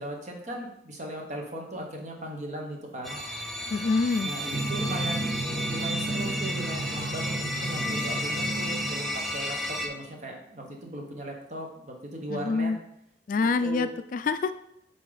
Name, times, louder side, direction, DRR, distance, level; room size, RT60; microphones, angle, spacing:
voice 1, 0.0-3.2 4.2-5.2 5.7-12.7 13.6-13.9, right 1 dB, 40° right, 1 dB, 1.2 m, -37 dB
sound 1, 3.0-9.9, equal, ahead, 0.6 m, -33 dB
voice 2, 3.7-4.3 12.3-12.8 13.3-14.5, left 4 dB, 45° left, 12 dB, 0.3 m, -26 dB
Drum, 4.5-9.6, right 2 dB, 25° right, 1.4 m, -33 dB
8.2 x 4.1 x 4.0 m, 0.77 s
head